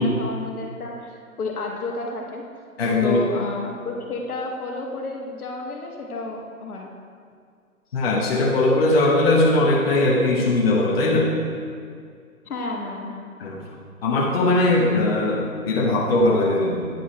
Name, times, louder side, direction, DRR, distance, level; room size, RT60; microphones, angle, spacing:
voice 1, 0.0-2.4 3.0-6.9 12.4-13.2, left 2 dB, 75° left, 0 dB, 1.4 m, -31 dB
voice 2, 2.8-3.2 7.9-11.3 13.4-13.6 14.0-16.9, left 2 dB, 40° left, -3 dB, 0.9 m, -20 dB
9.1 x 4.7 x 4.1 m, 2.2 s
hypercardioid pair, 160°, 45 cm